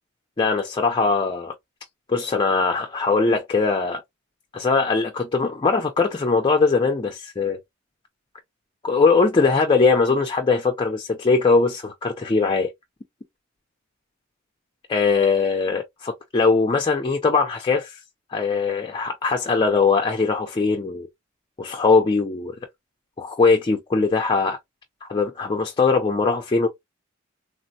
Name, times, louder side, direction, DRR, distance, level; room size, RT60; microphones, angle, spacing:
voice 1, 0.4-1.5 2.1-4.0 4.5-7.6 8.8-12.7 14.9-18.0 18.3-21.1 21.6-22.5 23.2-24.6 25.0-26.7, left 4 dB, 25° left, 0.4 m, -21 dB
3.3 x 2.1 x 2.6 m
head